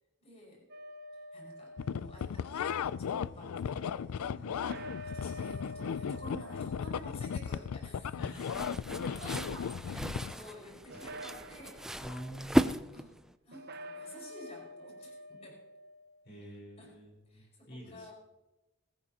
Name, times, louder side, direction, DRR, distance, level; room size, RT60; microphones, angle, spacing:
voice 1, 0.2-0.7 1.3-8.2 9.2-11.8 12.9-13.1 13.4-15.6 16.8-16.9 17.2-18.1, left 1 dB, 30° left, -2 dB, 5.6 m, -51 dB
sound 1, 0.7-2.7 4.5-8.3 8.7-9.7 10.9-12.0 13.5-16.2, equal, 45° right, 0.9 m, -48 dB
sound 2, 1.8-10.3, left 7 dB, 85° left, 0.4 m, -36 dB
voice 2, 4.3-4.6 8.2-8.4 12.0-13.2 16.2-18.1, equal, 55° left, -2 dB, 4.7 m, -47 dB
sound 3, 8.4-13.3, equal, ahead, 0.3 m, -34 dB
21.0 x 14.0 x 2.9 m, 1.0 s
head